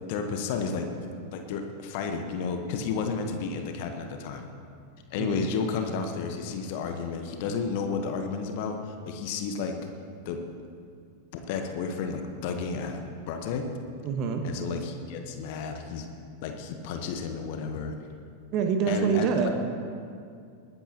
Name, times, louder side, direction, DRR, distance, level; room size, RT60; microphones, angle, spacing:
voice 1, 0.1-4.5 5.1-9.7 10.2-10.4 11.3-13.0 13.3-13.7 14.4-16.0 16.4-18.0 18.9-19.5, left 5 dB, 50° left, 5 dB, 1.2 m, -32 dB
voice 2, 5.2-5.5 14.0-14.4 18.5-19.5, right 6 dB, 40° right, 4 dB, 1.5 m, -26 dB
20.5 x 14.0 x 3.0 m, 2.3 s
figure-of-eight pair, 90°, 0 cm